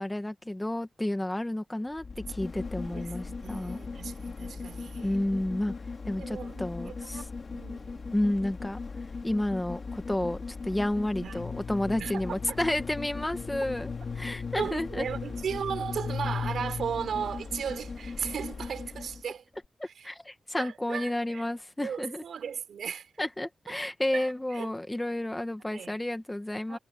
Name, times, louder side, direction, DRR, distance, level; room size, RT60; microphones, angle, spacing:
voice 1, 0.0-3.8 5.0-5.7 6.1-7.3 8.1-8.8 9.2-15.1 19.8-22.2 23.2-26.8, left 1 dB, 10° left, 1.4 m, -31 dB
sound 1, 1.9-19.3 19.6-19.7, left 4 dB, 40° left, 2.1 m, -39 dB
voice 2, 2.6-5.1 6.1-8.2 11.2-11.4 12.0-12.2 14.6-19.4 20.0-20.1 20.6-21.4 21.8-23.1 23.7-23.8 24.1-24.7 25.7-26.0 26.7-26.8, right 7 dB, 90° right, 4.0 m, -36 dB
sound 2, 11.4-17.3, left 6 dB, 65° left, 3.1 m, -39 dB
wide cardioid pair, 145°, 0 cm